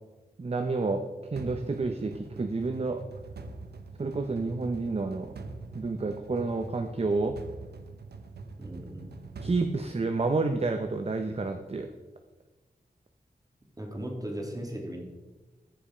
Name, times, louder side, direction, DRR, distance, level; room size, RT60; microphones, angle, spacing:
voice 1, 0.4-1.0 1.3-3.0 4.0-5.3 5.7-7.4 9.4-11.9, right 3 dB, 40° right, 6 dB, 0.8 m, -29 dB
sound 1, 1.4-10.5, right 3 dB, 85° right, 0.8 m, -44 dB
voice 2, 8.6-9.2 13.8-15.0, right 1 dB, 20° right, 1 dB, 2.4 m, -37 dB
14.5 x 5.3 x 5.0 m, 1.2 s
wide cardioid pair, 65°, 16 cm